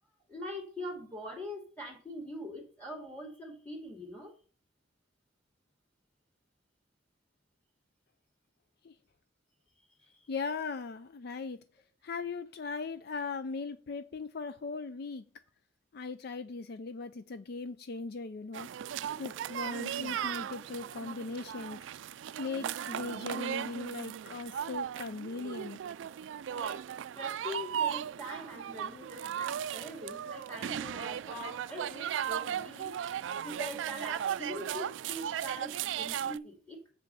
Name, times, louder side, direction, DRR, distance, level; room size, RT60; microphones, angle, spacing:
voice 1, 0.3-4.3 10.1-10.2 26.5-26.8 27.2-32.9 33.4-36.9, equal, 10° left, 2.5 m, -43 dB
voice 2, 10.3-11.6 12.0-15.2 15.9-18.7 19.2-21.8 22.4-25.8, left 4 dB, 60° left, 0.4 m, -39 dB
sound 1, 18.5-36.4, right 9 dB, 80° right, 0.3 m, -37 dB
7.6 x 5.2 x 5.5 m
head